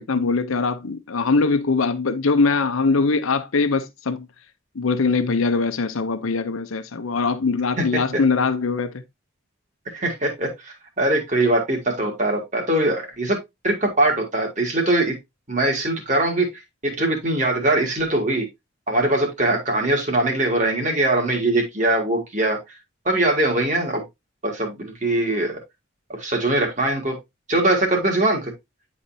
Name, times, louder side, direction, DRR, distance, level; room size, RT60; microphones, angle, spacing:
voice 1, 0.0-4.3 4.8-9.0, left 4 dB, 90° left, 0.7 m, -22 dB
voice 2, 7.8-8.2 9.9-13.4 13.6-15.1 15.5-18.5 18.9-22.6 23.1-24.0 24.4-25.6 26.1-27.2 27.5-28.5, right 2 dB, 35° right, 2.1 m, -22 dB
9.8 x 4.2 x 2.7 m
head